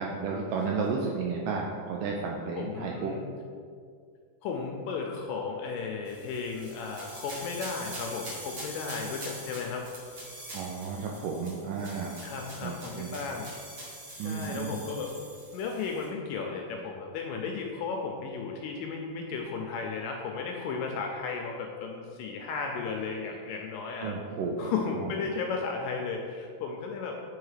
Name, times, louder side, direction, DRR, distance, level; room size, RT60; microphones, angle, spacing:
voice 1, 0.0-3.1 10.5-12.2 12.6-13.2 14.2-14.8 24.0-25.1, right 4 dB, 85° right, -1 dB, 1.9 m, -33 dB
voice 2, 2.6-3.3 4.4-9.8 12.2-13.5 14.2-15.2 15.5-24.1 24.6-27.2, left 5 dB, 80° left, 1 dB, 2.0 m, -34 dB
sound 1, 6.0-16.0, right 1 dB, 45° right, 1.5 m, -44 dB
5.5 x 4.6 x 4.9 m, 2.2 s
omnidirectional pair, 4.3 m